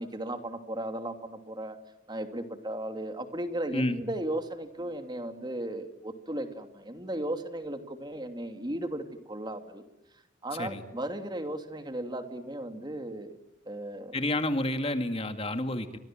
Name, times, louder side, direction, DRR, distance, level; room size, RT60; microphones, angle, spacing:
voice 1, 0.0-1.8 2.1-9.8 10.4-13.4 13.6-14.1, right 1 dB, 25° right, 7 dB, 2.9 m, -36 dB
voice 2, 14.1-16.0, left 1 dB, 30° left, 7 dB, 2.2 m, -29 dB
30.0 x 26.0 x 7.6 m, 0.91 s
head